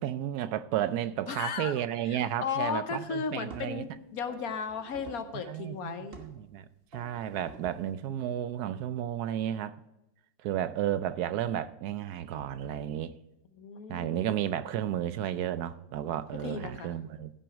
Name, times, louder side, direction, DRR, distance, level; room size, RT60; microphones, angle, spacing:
voice 1, 0.0-3.9 5.3-6.7 6.9-9.7 10.4-13.1 13.9-17.3, right 11 dB, 75° right, 1.0 m, -32 dB
voice 2, 1.3-1.7 2.1-6.2 13.6-14.4 16.4-16.9, left 6 dB, 60° left, 1.3 m, -35 dB
sound 1, 2.8-2.9 3.5-3.9 4.3-5.4 6.1-6.4 6.9-7.9, right 3 dB, 35° right, 1.4 m, -49 dB
15.5 x 6.1 x 4.7 m
omnidirectional pair, 1.8 m